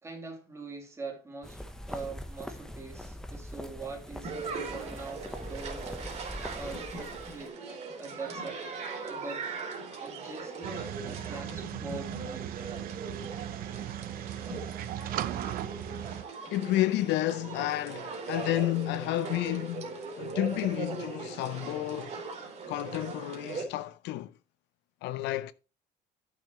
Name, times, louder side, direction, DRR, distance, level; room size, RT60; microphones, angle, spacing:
voice 1, 0.0-6.0 6.5-8.6 9.0-9.5 10.0-12.5, right 3 dB, 15° right, 2.6 m, -43 dB
sound 1, 1.4-7.5, left 1 dB, 5° left, 0.9 m, -42 dB
sound 2, 4.2-23.6, right 4 dB, 40° right, 3.1 m, -40 dB
sound 3, 10.6-16.2, right 12 dB, 55° right, 0.7 m, -37 dB
voice 2, 16.5-22.2 22.7-24.3 25.0-25.5, left 15 dB, 75° left, 0.6 m, -31 dB
11.5 x 6.9 x 3.0 m
cardioid pair, 175°, 18 cm